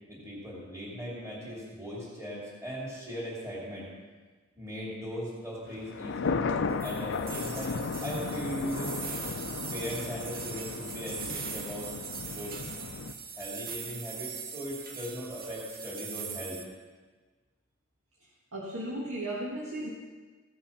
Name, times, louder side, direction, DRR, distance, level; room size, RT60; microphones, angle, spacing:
voice 1, 0.1-3.9 4.5-6.4 6.8-9.0 9.7-11.9 12.3-12.6 13.4-16.6, equal, 15° right, -6 dB, 2.7 m, -39 dB
sound 1, 5.7-13.1, left 4 dB, 60° left, 0.5 m, -35 dB
sound 2, 6.8-16.6, right 6 dB, 45° right, 0.9 m, -41 dB
voice 2, 18.5-19.9, right 1 dB, 85° right, -5 dB, 1.6 m, -35 dB
15.5 x 5.7 x 5.6 m, 1.4 s
head